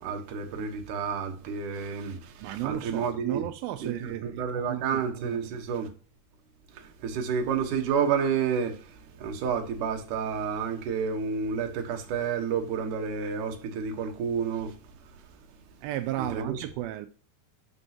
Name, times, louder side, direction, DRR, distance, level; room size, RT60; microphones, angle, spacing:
voice 1, 0.0-3.4 3.8-5.9 6.7-14.8 16.2-16.7, right 6 dB, 65° right, 2.4 m, -30 dB
voice 2, 2.4-5.6 15.8-17.1, right 14 dB, 85° right, 2.1 m, -34 dB
12.5 x 5.3 x 2.9 m
omnidirectional pair, 4.7 m